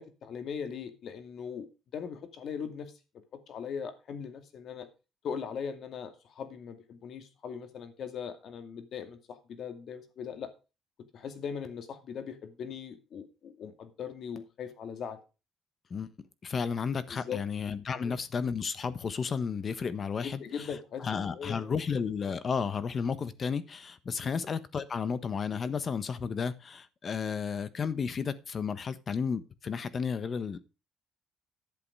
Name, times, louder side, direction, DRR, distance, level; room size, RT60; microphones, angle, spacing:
voice 1, 0.0-1.7 1.9-2.9 3.3-4.9 5.2-10.5 11.1-15.2 17.1-17.4 17.9-18.2 20.2-21.8 24.2-24.4, left 7 dB, 60° left, 8 dB, 2.4 m, -40 dB
voice 2, 16.4-20.7 21.0-30.6, left 6 dB, 40° left, 14 dB, 1.3 m, -33 dB
11.0 x 8.1 x 4.8 m, 0.31 s
cardioid pair, 100°, 0 cm